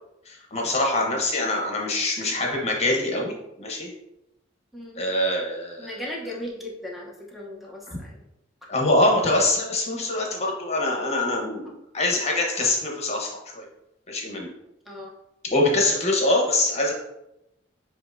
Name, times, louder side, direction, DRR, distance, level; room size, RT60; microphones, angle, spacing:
voice 1, 0.2-3.9 5.0-5.9 7.9-8.0 8.7-13.7 14.1-14.5 15.4-16.9, left 2 dB, 35° left, 0 dB, 1.0 m, -24 dB
voice 2, 5.8-8.2 14.9-15.1, left 1 dB, ahead, -2 dB, 0.8 m, -37 dB
7.1 x 2.8 x 2.6 m, 0.87 s
head